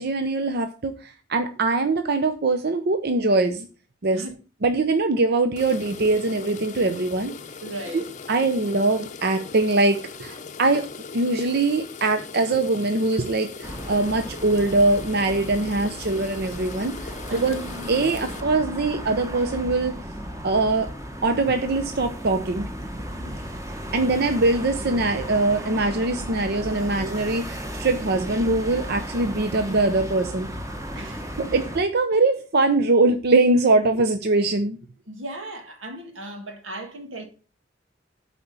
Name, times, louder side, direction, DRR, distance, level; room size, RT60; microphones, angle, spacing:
voice 1, 0.0-3.7 4.0-4.2 4.6-7.3 7.9-8.0 8.3-10.9 11.1-17.0 17.3-17.6 17.9-20.0 20.4-20.9 21.2-22.7 23.9-30.5 31.4-34.8, right 2 dB, 55° right, 0.7 m, -22 dB
sound 1, 5.6-18.4, left 5 dB, 40° left, 0.6 m, -39 dB
voice 2, 7.6-8.1 17.3-18.0 23.2-23.5 30.9-31.6 35.1-37.2, right 1 dB, 85° right, 2.1 m, -37 dB
sound 2, 13.6-31.8, equal, 15° right, 1.1 m, -35 dB
8.4 x 4.4 x 6.8 m
head